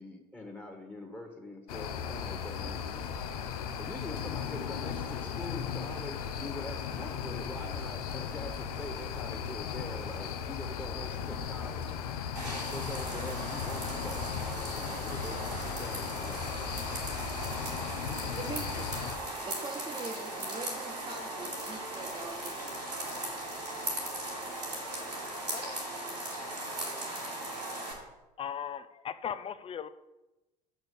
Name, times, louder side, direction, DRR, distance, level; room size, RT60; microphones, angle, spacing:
voice 1, 0.0-2.9 3.8-12.0 12.7-14.2 14.7-16.4, left 1 dB, 10° left, 1.7 m, -44 dB
sound 1, 1.7-19.2, left 7 dB, 65° left, 0.8 m, -37 dB
sound 2, 12.3-27.9, right 1 dB, 90° right, 2.4 m, -38 dB
voice 2, 18.4-19.0 19.4-23.4, right 3 dB, 20° right, 1.2 m, -43 dB
voice 3, 25.5-25.8 28.4-29.9, left 8 dB, 25° left, 0.6 m, -38 dB
6.7 x 6.3 x 7.0 m
figure-of-eight pair, 65°, 21 cm